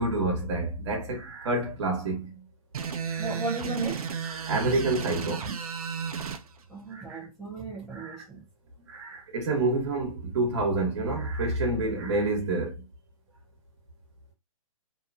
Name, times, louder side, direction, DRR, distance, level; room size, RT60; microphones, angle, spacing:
voice 1, 0.0-2.3 3.1-3.4 4.2-5.5 6.9-7.3 7.9-8.2 8.9-12.8, right 2 dB, 50° right, 1.3 m, -28 dB
sound 1, 2.7-6.4, right 6 dB, 85° right, 0.5 m, -33 dB
voice 2, 3.2-4.1 6.7-8.4, right 3 dB, ahead, 0.5 m, -34 dB
2.9 x 2.2 x 2.5 m
hypercardioid pair, 160°, 18 cm